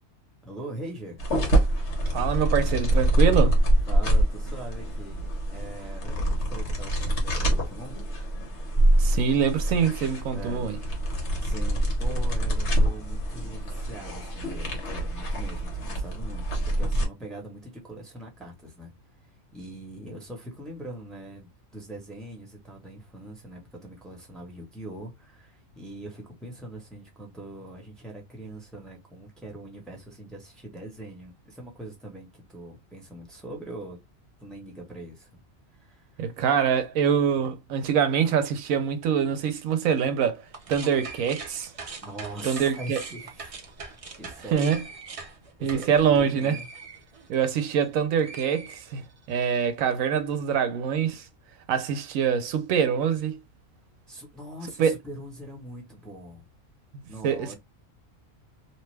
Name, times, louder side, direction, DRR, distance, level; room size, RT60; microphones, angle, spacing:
voice 1, 0.4-1.2 3.9-7.9 10.3-10.7 11.4-18.9 19.5-34.0 34.4-35.3 35.8-36.2 42.0-43.5 44.2-44.7 45.6-46.7 54.1-56.4 57.1-57.6, right 1 dB, ahead, 0.9 m, -42 dB
sound 1, 1.2-17.1, right 1 dB, 60° left, 1.2 m, -25 dB
voice 2, 2.1-3.6 9.0-10.8 36.2-41.7 42.4-43.0 44.5-44.8 45.6-46.6 47.3-51.3 51.7-53.4 54.8-54.9 57.2-57.6, right 7 dB, 80° right, 1.0 m, -24 dB
sound 2, 40.5-47.9 48.2-49.4, right 4 dB, 55° right, 0.4 m, -42 dB
2.7 x 2.2 x 3.2 m
omnidirectional pair, 1.4 m